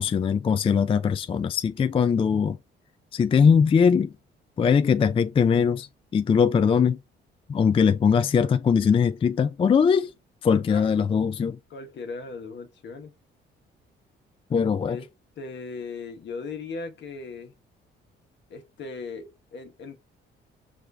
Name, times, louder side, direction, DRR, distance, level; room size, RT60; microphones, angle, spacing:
voice 1, 0.0-2.6 3.1-4.1 4.6-7.0 7.5-10.1 10.4-11.6 14.5-15.0, left 6 dB, 30° left, 0.3 m, -21 dB
voice 2, 10.7-11.3 11.7-13.1 14.9-15.1 15.4-17.6 18.5-20.0, left 4 dB, 65° left, 1.2 m, -38 dB
4.8 x 2.5 x 3.3 m
cardioid pair, 90°, 20 cm